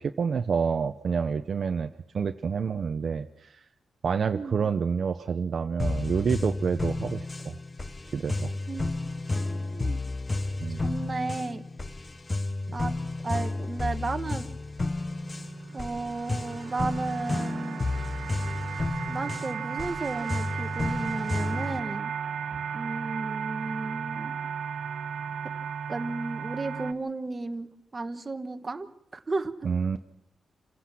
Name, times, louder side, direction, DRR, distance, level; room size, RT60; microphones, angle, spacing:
voice 1, 0.0-3.6 4.0-7.5 8.1-8.5 10.6-10.8 12.7-12.8 29.6-30.0, right 6 dB, 50° right, 7 dB, 0.7 m, -28 dB
sound 1, 5.8-21.8, left 2 dB, 20° left, 0.8 m, -32 dB
voice 2, 8.7-10.0 10.8-11.6 12.7-14.5 15.7-17.8 19.1-22.1 22.7-24.3 25.9-28.9 29.1-29.7, right 3 dB, 25° right, 7 dB, 1.2 m, -34 dB
sound 2, 14.9-26.9, right 7 dB, 85° right, 1.5 m, -35 dB
28.0 x 16.5 x 6.0 m, 0.81 s
wide cardioid pair, 140°, 0 cm